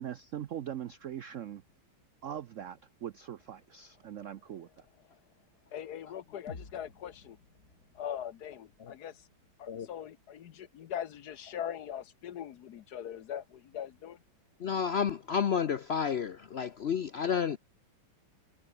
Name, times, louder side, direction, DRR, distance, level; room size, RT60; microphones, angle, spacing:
voice 1, 0.0-1.6 2.2-4.9, right 10 dB, 75° right, 0.7 m, -41 dB
voice 2, 5.7-7.4 7.9-9.2 9.6-14.2, left 9 dB, 60° left, 1.3 m, -41 dB
sound 1, 6.5-10.4, left 4 dB, 45° left, 3.3 m, -54 dB
voice 3, 14.6-17.6, left 7 dB, 90° left, 0.5 m, -31 dB
omnidirectional pair, 2.1 m